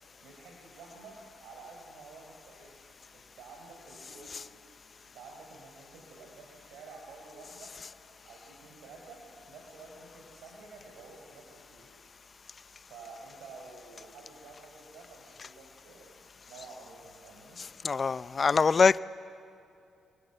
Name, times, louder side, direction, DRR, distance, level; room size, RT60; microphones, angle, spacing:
voice 1, 0.2-2.7 3.1-4.5 5.0-7.7 8.2-11.9 12.7-16.2 16.5-17.6, right 4 dB, 85° right, 4.3 m, -51 dB
voice 2, 17.6-19.0, left 5 dB, 35° left, 0.5 m, -24 dB
27.5 x 21.5 x 8.0 m
cardioid pair, 90°, 0 cm